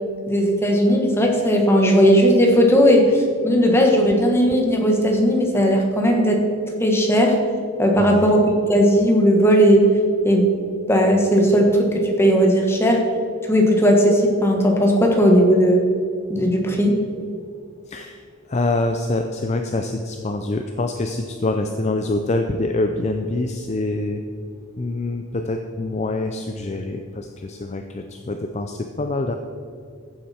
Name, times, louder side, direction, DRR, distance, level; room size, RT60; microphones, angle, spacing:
voice 1, 0.3-6.4 6.8-7.4 7.8-9.8 10.2-10.5 10.9-13.0 13.5-15.8 16.3-16.9, equal, 10° left, 1 dB, 1.4 m, -16 dB
voice 2, 8.0-8.4 17.9-18.2 18.5-24.2 24.8-29.3, left 2 dB, 30° left, 5 dB, 0.5 m, -25 dB
14.5 x 7.7 x 4.3 m, 2.4 s
head